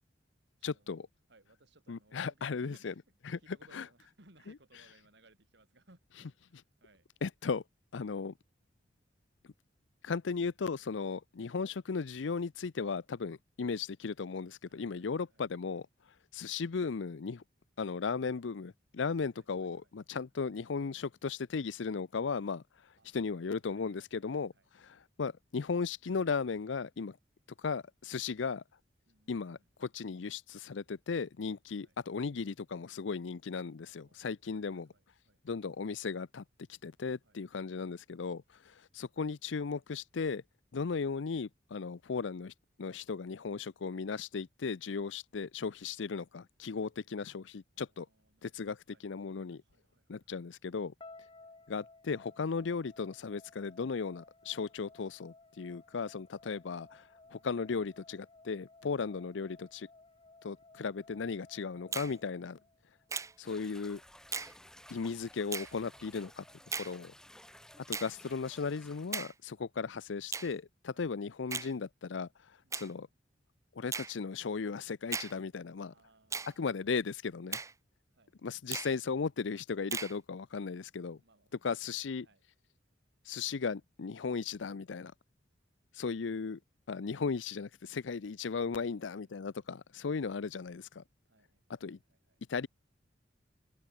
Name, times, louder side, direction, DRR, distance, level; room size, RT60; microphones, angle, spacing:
voice 1, 0.6-1.1 1.9-2.9 3.3-3.4 3.8-3.9 7.2-7.6 7.9-8.3 10.0-15.8 16.3-17.4 17.8-22.6 23.1-24.5 25.2-27.2 27.6-28.6 29.3-34.9 35.5-36.4 36.8-40.4 40.7-42.5 42.8-48.1 48.4-48.8 49.0-49.6 50.1-50.9 51.7-57.0 57.3-59.9 60.4-62.6 63.4-64.0 64.9-66.4 66.8-67.1 67.9-72.3 72.7-73.1 73.8-75.9 76.6-77.6 78.4-81.2 81.6-82.2 83.3-85.1 85.9-86.6 86.9-91.0 91.8-92.0 92.5-92.7, left 5 dB, 80° left, 0.6 m, -36 dB
voice 2, 1.3-7.1 10.9-11.1 14.7-15.5 19.3-19.9 23.0-24.7 29.1-29.7 31.8-32.0 33.9-35.4 37.2-37.4 47.7-49.1 49.6-50.4 57.2-57.9 61.7-62.7 65.8-67.1 69.5-69.7 70.9-71.1 72.6-73.1 75.9-76.8 78.1-78.4 81.2-82.5 88.4-89.7 91.3-92.4, right 2 dB, 65° right, 5.5 m, -67 dB
sound 1, 51.0-63.1, left 3 dB, 30° left, 6.0 m, -58 dB
Finger snapping, 61.9-62.1 63.1-63.3 64.3-64.5 65.5-65.7 66.7-66.9 67.9-68.1 69.1-69.3 70.3-70.5 71.5-71.7 72.7-72.9 73.9-74.1 75.1-75.3 76.3-76.5 77.5-77.7 78.7-78.9 79.9-80.1, right 5 dB, 15° right, 0.5 m, -37 dB
sound 2, 63.4-69.2, left 1 dB, 5° left, 2.1 m, -56 dB
head